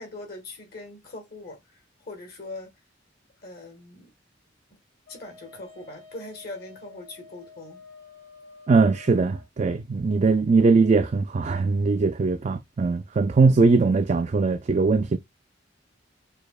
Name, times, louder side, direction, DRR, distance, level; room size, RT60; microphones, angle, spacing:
voice 1, 0.0-2.7 3.4-4.1 5.1-7.8, left 2 dB, 55° left, 1.5 m, -41 dB
Wind instrument woodwind instrument, 5.1-9.5, left 5 dB, 80° left, 2.3 m, -49 dB
voice 2, 8.7-15.2, right 4 dB, 40° right, 0.4 m, -21 dB
6.5 x 2.8 x 2.3 m
head